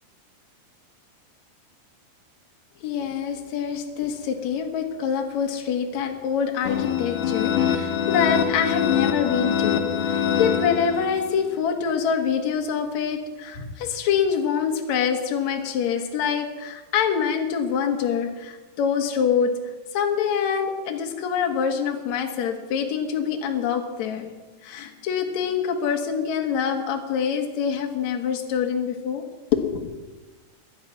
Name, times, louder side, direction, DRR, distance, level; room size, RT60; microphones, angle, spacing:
voice 1, 2.8-19.5 19.9-24.3 24.6-29.2 29.5-30.1, left 7 dB, 55° left, 3 dB, 2.2 m, -25 dB
sound 1, 6.7-11.4, left 8 dB, 75° left, 3.2 m, -24 dB
18.0 x 11.5 x 6.0 m, 1.2 s
omnidirectional pair, 5.1 m